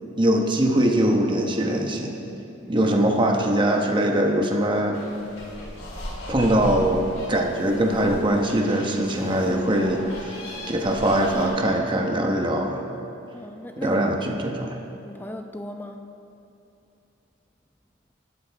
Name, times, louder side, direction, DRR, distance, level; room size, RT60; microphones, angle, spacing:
voice 1, 0.2-2.1 2.7-5.0 6.3-7.0 7.3-10.4 10.7-12.8 13.8-14.8, right 1 dB, 25° right, 1 dB, 1.1 m, -22 dB
voice 2, 2.5-2.9 13.3-14.5 15.0-16.1, equal, 10° left, 5 dB, 0.6 m, -37 dB
sound 1, 4.9-11.5, left 1 dB, 90° left, 3.8 m, -37 dB
20.0 x 12.5 x 3.5 m, 2.8 s
head